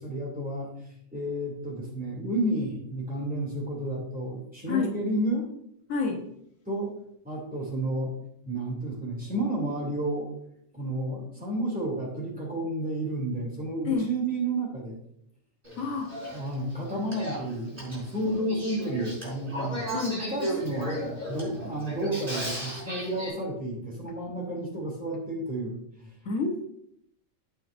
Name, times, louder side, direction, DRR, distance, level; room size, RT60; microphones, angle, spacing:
voice 1, 0.0-5.5 6.7-6.9 7.2-8.2 8.4-10.3 10.7-15.0 16.3-19.8 20.3-21.0 21.3-26.1, right 1 dB, 5° right, -3 dB, 2.8 m, -31 dB
voice 2, 5.9-6.2 13.8-14.1 15.8-16.2 19.9-20.2 26.2-26.6, left 4 dB, 80° left, 1 dB, 1.7 m, -28 dB
Male speech man speaking / Female speech woman speaking / Conversation, 15.6-23.3, right 1 dB, 40° right, 4.1 m, -35 dB
14.5 x 5.7 x 2.6 m, 0.72 s
omnidirectional pair, 1.4 m